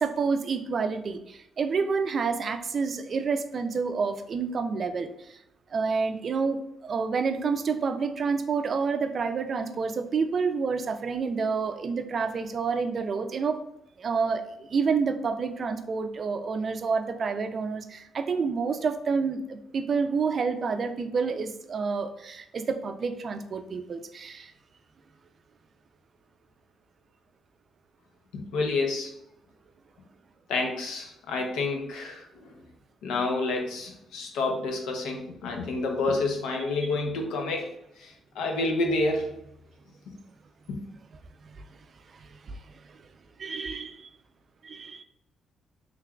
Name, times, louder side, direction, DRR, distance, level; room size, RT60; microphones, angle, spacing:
voice 1, 0.0-5.4 5.7-13.6 14.0-24.5 36.8-36.9 41.4-41.8 42.1-43.0 43.4-44.1 44.6-45.0, right 5 dB, 50° right, 8 dB, 0.3 m, -29 dB
voice 2, 28.3-29.1 30.5-32.2 33.0-37.7 38.0-39.3 40.1-40.2 40.7-40.8, left 3 dB, 90° left, 3 dB, 0.6 m, -29 dB
3.6 x 3.2 x 2.3 m, 0.77 s
cardioid pair, 90°, 0 cm